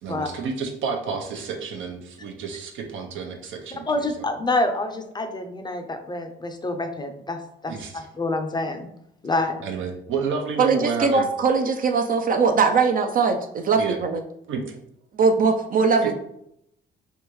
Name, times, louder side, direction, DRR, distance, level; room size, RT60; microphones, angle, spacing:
voice 1, 0.0-4.2 7.7-8.1 9.6-11.3 13.8-14.0 14.5-14.8 16.0-16.1, right 5 dB, 80° right, 2 dB, 0.7 m, -30 dB
voice 2, 3.9-7.4 7.6-8.9 9.2-9.6, left 2 dB, 20° left, 6 dB, 0.5 m, -27 dB
voice 3, 10.6-14.2 15.1-16.1, right 5 dB, 45° right, 5 dB, 0.4 m, -20 dB
3.4 x 2.6 x 3.1 m, 0.75 s
cardioid pair, 90°, 20 cm